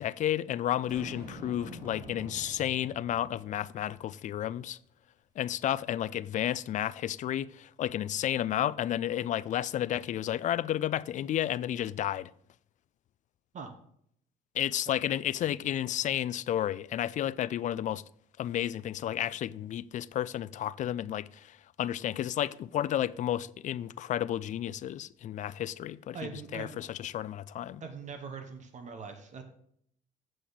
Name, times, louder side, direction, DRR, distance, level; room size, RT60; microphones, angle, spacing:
voice 1, 0.0-4.8 5.4-12.3 14.5-18.0 18.4-26.2 26.5-27.8, left 11 dB, 50° left, 0.4 m, -32 dB
Boom, 0.9-4.2, equal, 20° right, 4.3 m, -46 dB
voice 2, 26.1-26.8 27.8-29.4, right 5 dB, 45° right, 1.3 m, -42 dB
8.2 x 7.7 x 4.1 m
cardioid pair, 110°, 17 cm